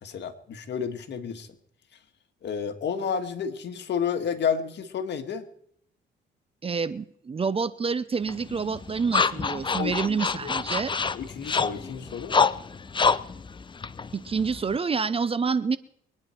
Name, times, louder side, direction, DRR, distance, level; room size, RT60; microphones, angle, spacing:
voice 1, 0.0-1.5 2.4-5.4 9.7-9.9 10.4-10.5 11.1-12.3, left 7 dB, 60° left, 7 dB, 1.7 m, -30 dB
voice 2, 6.6-10.9 14.1-15.8, right 5 dB, 30° right, 16 dB, 0.7 m, -28 dB
sound 1, 8.3-14.8, left 5 dB, 25° left, 0.6 m, -27 dB
23.5 x 9.8 x 4.5 m, 0.69 s
cardioid pair, 90°, 20 cm